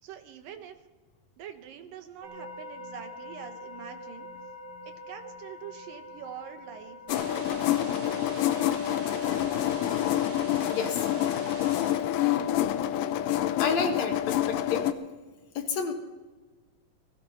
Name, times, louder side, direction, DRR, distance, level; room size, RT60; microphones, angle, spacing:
voice 1, 0.0-0.8 1.4-4.3 4.9-8.2, right 9 dB, 85° right, 7 dB, 2.9 m, -45 dB
sound 1, 2.2-13.7, left 1 dB, 35° right, 3.6 m, -47 dB
sound 2, 7.1-14.9, left 12 dB, 85° left, 2.3 m, -27 dB
sound 3, 7.1-12.1, right 5 dB, 55° right, 2.8 m, -45 dB
voice 2, 10.7-11.0 13.6-14.9 15.6-15.9, left 5 dB, 60° left, 6 dB, 2.2 m, -29 dB
18.5 x 16.0 x 4.3 m, 1.3 s
omnidirectional pair, 3.9 m